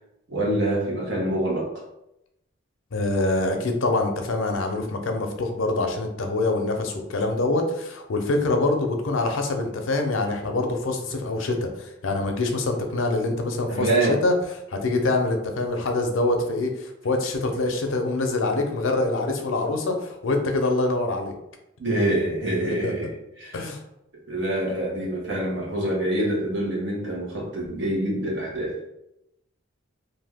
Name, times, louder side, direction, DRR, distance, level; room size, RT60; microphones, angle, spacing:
voice 1, 0.3-1.8 13.7-14.2 21.8-23.6 24.1-28.8, right 1 dB, 65° right, -4 dB, 1.0 m, -26 dB
voice 2, 2.9-13.9 14.2-14.3 14.7-21.4 22.6-22.9 23.5-23.8, left 2 dB, 75° left, 4 dB, 0.5 m, -25 dB
2.6 x 2.2 x 3.4 m, 0.84 s
head